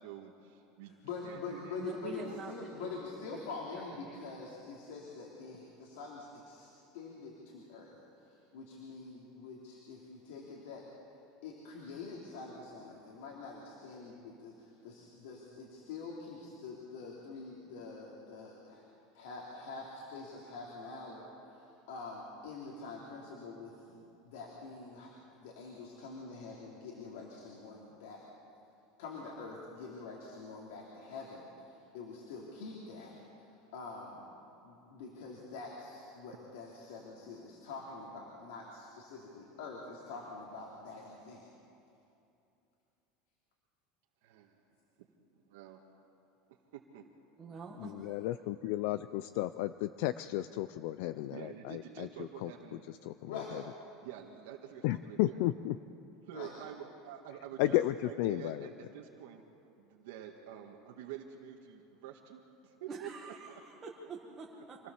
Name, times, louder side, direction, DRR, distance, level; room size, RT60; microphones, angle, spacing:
voice 1, 0.0-0.9 1.2-2.4 32.9-33.0 44.2-44.6 45.0-45.1 45.5-45.8 46.7-47.1 51.3-53.0 53.3-53.4 54.0-55.4 56.3-59.4 59.8-63.8, right 10 dB, 70° right, 0 dB, 1.7 m, -48 dB
voice 2, 0.9-10.8 11.4-18.8 19.1-28.2 29.0-34.2 34.6-41.4 53.3-53.5 56.3-56.5, left 4 dB, 80° left, -2 dB, 3.0 m, -46 dB
voice 3, 1.8-3.0 3.3-3.4 4.1-4.2 47.4-48.2 62.9-64.8, right 4 dB, 20° right, -2 dB, 1.4 m, -45 dB
voice 4, 47.8-53.6 54.8-55.8 57.6-58.7, left 15 dB, 55° left, 13 dB, 0.4 m, -34 dB
26.0 x 16.5 x 7.1 m, 2.7 s
supercardioid pair, 180°, 0 cm